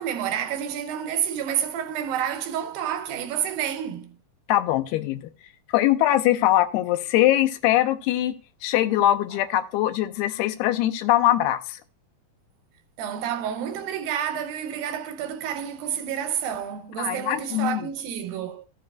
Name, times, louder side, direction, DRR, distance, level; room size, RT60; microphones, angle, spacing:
voice 1, 0.0-4.1 13.0-18.7, right 9 dB, 80° right, 2.3 m, -29 dB
voice 2, 4.5-5.2 5.7-8.3 8.6-11.8 17.0-17.9, left 14 dB, 90° left, 2.7 m, -22 dB
14.0 x 7.6 x 2.3 m
omnidirectional pair, 4.4 m